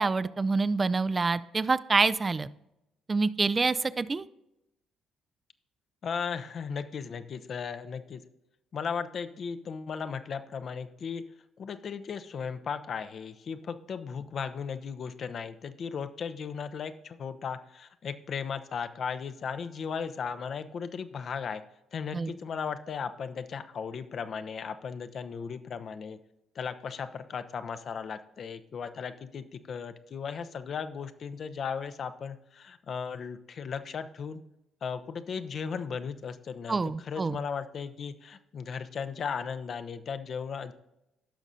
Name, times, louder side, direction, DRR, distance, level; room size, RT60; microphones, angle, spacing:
voice 1, 0.0-2.5 3.1-4.2 22.1-22.3 36.7-37.4, right 4 dB, 30° right, 15 dB, 0.3 m, -26 dB
voice 2, 6.0-8.2 8.7-11.2 11.6-21.6 21.9-26.2 26.6-34.4 34.8-40.7, left 6 dB, 50° left, 10 dB, 0.6 m, -36 dB
16.0 x 6.0 x 2.7 m, 0.89 s
hypercardioid pair, 50°, 0 cm